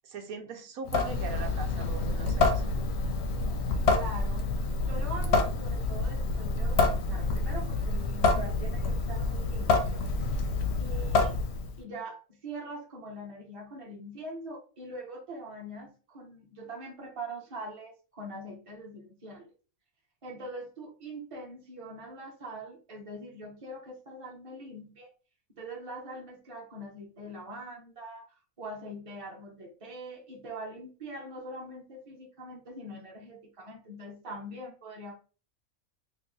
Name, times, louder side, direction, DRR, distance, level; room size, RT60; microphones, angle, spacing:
voice 1, 0.0-2.6, right 5 dB, 90° right, 5 dB, 1.2 m, -40 dB
Water tap faucet / Sink (filling or washing) / Drip, 0.9-11.8, left 3 dB, 60° left, 0.8 m, -28 dB
voice 2, 3.9-4.5 4.8-10.1 10.7-11.4 11.8-19.5 20.2-25.1 25.5-28.3 28.6-35.1, right 1 dB, 25° right, -1 dB, 0.9 m, -43 dB
3.0 x 2.4 x 3.7 m, 0.36 s
omnidirectional pair, 1.5 m